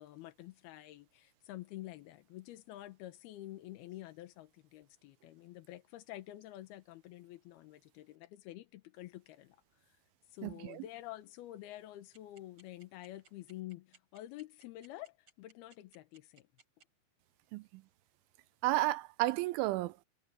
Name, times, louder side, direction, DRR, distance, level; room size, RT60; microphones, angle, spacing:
voice 1, 0.0-10.0 10.3-16.5, left 15 dB, 70° left, 2.5 m, -49 dB
voice 2, 10.4-10.8 17.5-17.8 18.6-19.9, right 18 dB, 85° right, 3.1 m, -32 dB
sound 1, 12.1-16.8, right 5 dB, 30° right, 4.1 m, -62 dB
omnidirectional pair, 5.5 m